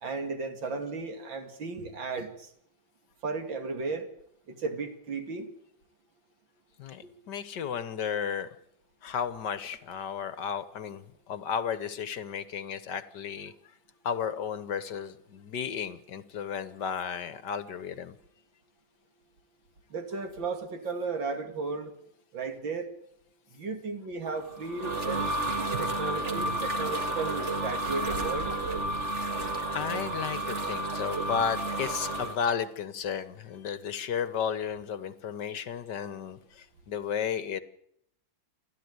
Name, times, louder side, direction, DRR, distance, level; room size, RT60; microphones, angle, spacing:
voice 1, 0.0-2.5 3.2-4.1 4.5-5.5 7.0-7.1 19.9-21.9 22.3-22.9 23.5-28.5, right 4 dB, 75° right, 7 dB, 3.1 m, -35 dB
voice 2, 6.8-8.5 9.0-13.7 14.0-18.2 29.7-37.6, left 7 dB, 65° left, 14 dB, 1.7 m, -33 dB
sound 1, 24.4-32.4, right 1 dB, 35° right, 2.0 m, -31 dB
29.5 x 12.0 x 9.6 m, 0.73 s
omnidirectional pair, 2.1 m